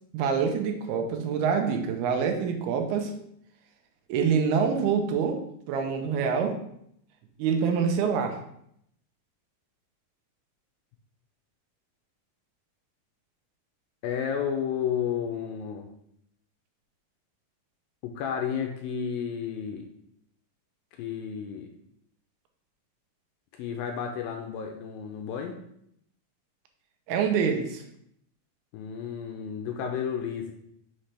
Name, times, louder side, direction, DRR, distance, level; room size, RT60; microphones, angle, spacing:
voice 1, 0.1-3.1 4.1-5.4 5.7-6.6 7.4-8.4 27.1-27.8, right 6 dB, 90° right, 4 dB, 2.7 m, -26 dB
voice 2, 14.0-15.9 18.0-19.9 21.0-21.7 23.6-25.5 28.7-30.5, left 7 dB, 80° left, 3 dB, 2.2 m, -32 dB
6.4 x 3.3 x 5.7 m, 0.72 s
omnidirectional pair, 4.6 m